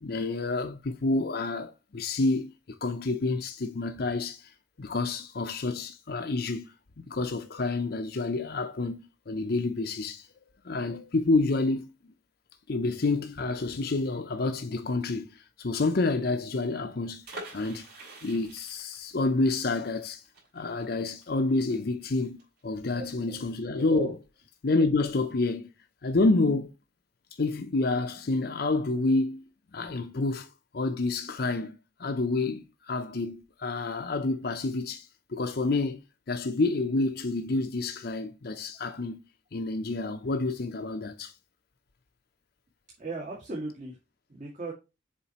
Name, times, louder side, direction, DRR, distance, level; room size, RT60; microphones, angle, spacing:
voice 1, 0.0-2.5 2.8-4.5 4.8-10.3 10.6-11.9 12.7-17.2 17.5-17.9 18.2-20.2 20.5-24.1 24.6-25.7 26.0-26.7 27.4-30.5 30.7-39.2 39.5-41.3, left 3 dB, 60° left, 0.7 m, -28 dB
sound 1, 17.2-22.9 23.2-23.3 23.5-23.8, right 2 dB, 60° right, 3.8 m, -47 dB
voice 2, 22.9-23.4 23.8-24.1 43.0-44.0 44.3-44.7, right 3 dB, 45° right, 2.0 m, -37 dB
7.2 x 4.5 x 2.9 m
head